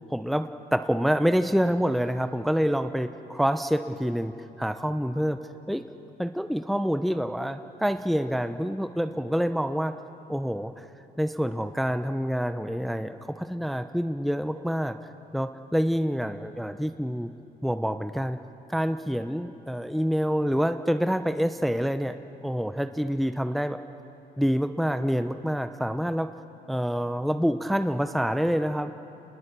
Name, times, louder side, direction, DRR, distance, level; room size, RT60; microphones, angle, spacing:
voice 1, 0.1-4.3 4.6-5.4 5.7-5.8 6.2-9.9 10.3-10.8 11.2-15.0 15.3-17.3 17.6-18.4 18.7-22.2 22.4-23.8 24.4-26.3 26.7-28.9, equal, ahead, 9 dB, 0.6 m, -27 dB
28.5 x 20.0 x 6.8 m, 2.8 s
cardioid pair, 110°, 17 cm